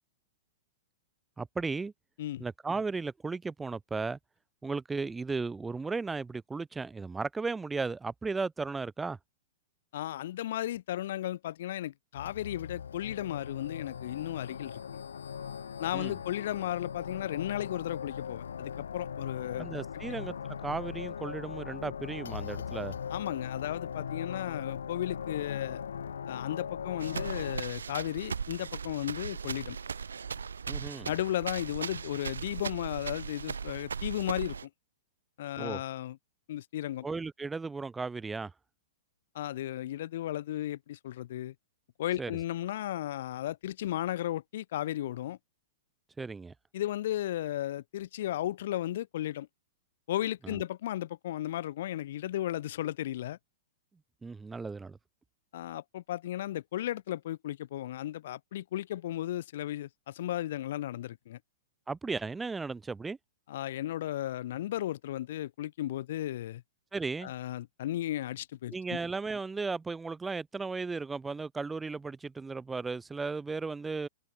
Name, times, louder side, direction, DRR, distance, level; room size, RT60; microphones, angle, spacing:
voice 1, 1.4-1.9 2.4-4.2 4.6-9.2 15.9-16.1 19.6-23.0 30.7-31.1 35.6-35.8 37.0-38.5 42.2-42.3 46.2-46.5 50.4-50.6 54.2-55.0 61.9-63.2 66.9-67.3 68.7-74.1, right 4 dB, 10° right, 1.1 m, -35 dB
voice 2, 9.9-15.0 15.8-19.7 23.1-25.8 26.3-29.8 31.1-34.6 35.4-36.2 36.5-37.1 39.3-41.5 42.0-45.4 46.7-49.5 50.1-53.4 55.5-61.4 63.5-66.6 67.2-69.0, left 13 dB, 60° left, 0.3 m, -35 dB
sound 1, 12.2-27.6, left 7 dB, 75° left, 0.8 m, -39 dB
sound 2, 27.0-34.6, right 6 dB, 80° right, 0.9 m, -38 dB
hypercardioid pair, 110°, 0 cm